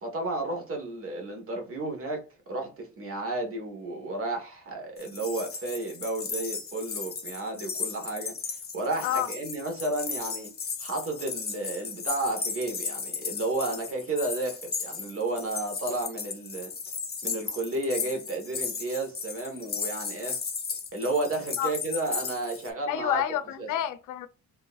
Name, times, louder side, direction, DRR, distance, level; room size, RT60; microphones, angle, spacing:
voice 1, 0.0-10.5 10.8-16.7 17.2-20.4 20.9-23.2 23.6-23.7, right 2 dB, 45° right, 1.5 m, -32 dB
sound 1, 5.0-22.7, left 5 dB, 30° left, 0.9 m, -36 dB
voice 2, 22.9-24.3, left 11 dB, 85° left, 0.5 m, -28 dB
3.8 x 3.1 x 2.5 m
cardioid pair, 90°, 30 cm